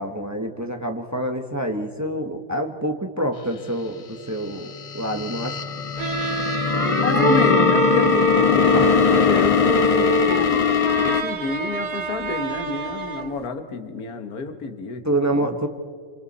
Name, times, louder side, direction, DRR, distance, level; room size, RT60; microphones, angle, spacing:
voice 1, 0.0-5.6 8.7-9.0 15.0-15.7, right 1 dB, 10° right, 5 dB, 1.1 m, -27 dB
sound 1, 4.7-11.2, left 7 dB, 60° left, 0.3 m, -20 dB
sound 2, 6.0-13.5, right 2 dB, 40° right, 0.6 m, -25 dB
voice 2, 6.9-15.0 15.3-15.5, left 4 dB, 90° left, 7 dB, 2.0 m, -29 dB
27.0 x 26.5 x 4.2 m, 2.1 s
omnidirectional pair, 1.5 m